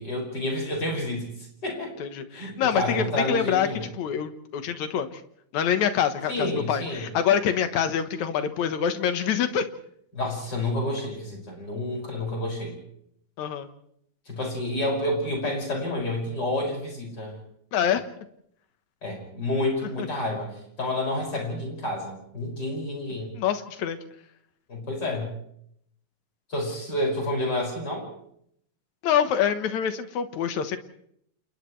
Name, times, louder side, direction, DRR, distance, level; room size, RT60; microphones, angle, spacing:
voice 1, 0.0-1.9 2.3-3.9 6.3-7.1 10.1-12.8 14.3-17.4 19.0-23.3 24.7-25.3 26.5-28.1, left 1 dB, 25° left, 0 dB, 6.6 m, -29 dB
voice 2, 2.0-3.7 4.0-5.1 5.5-9.7 13.4-13.7 17.7-18.0 20.0-20.1 23.4-24.0 29.0-30.8, left 8 dB, 60° left, 9 dB, 2.3 m, -25 dB
29.5 x 28.5 x 3.3 m, 0.71 s
omnidirectional pair, 4.2 m